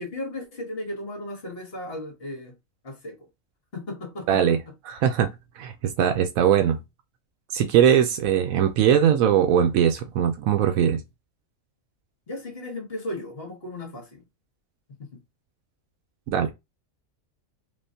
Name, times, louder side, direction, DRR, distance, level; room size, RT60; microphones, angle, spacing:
voice 1, 0.0-2.5 2.8-3.3 3.7-4.4 4.7-4.8 12.3-14.2 14.9-15.2, left 1 dB, 50° left, 1.5 m, -35 dB
voice 2, 4.3-4.6 4.9-5.3 5.6-5.7 6.0-6.8 7.5-11.0 16.3-16.5, right 9 dB, 85° right, 1.0 m, -20 dB
3.5 x 3.0 x 2.7 m
omnidirectional pair, 1.4 m